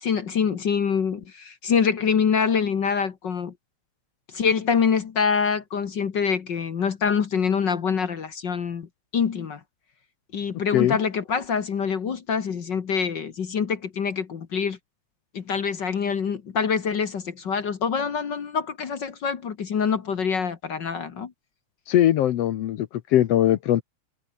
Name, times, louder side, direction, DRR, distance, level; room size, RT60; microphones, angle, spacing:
voice 1, 0.0-3.5 4.3-8.9 9.1-9.6 10.3-14.8 15.3-21.3, left 6 dB, 45° left, 1.7 m, -25 dB
voice 2, 21.9-23.8, left 12 dB, 65° left, 1.8 m, -21 dB
omnidirectional pair, 3.4 m